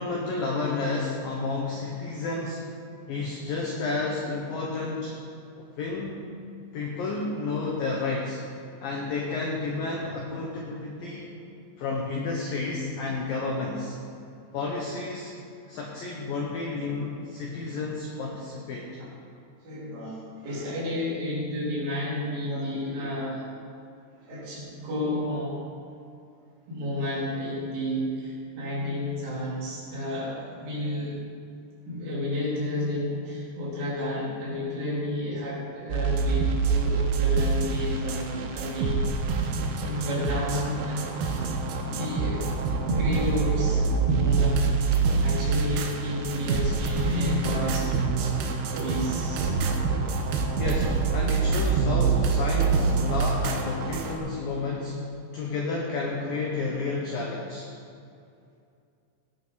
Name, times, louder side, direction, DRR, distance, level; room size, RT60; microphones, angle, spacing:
voice 1, 0.0-2.6 3.1-5.1 5.8-6.2 6.7-8.4 8.8-11.3 11.8-13.9 14.5-15.3 15.7-18.9 50.6-55.0 55.3-57.7, left 3 dB, 80° left, -2 dB, 2.0 m, -31 dB
voice 2, 19.6-23.5 24.2-25.6 26.7-31.2 31.9-39.2 39.8-41.1 41.8-42.6 42.8-48.0 48.7-49.6, left 1 dB, 65° right, -8 dB, 6.1 m, -31 dB
sound 1, 35.9-54.2, right 5 dB, 85° right, 2.2 m, -26 dB
17.0 x 9.5 x 4.1 m, 2.5 s
omnidirectional pair, 6.0 m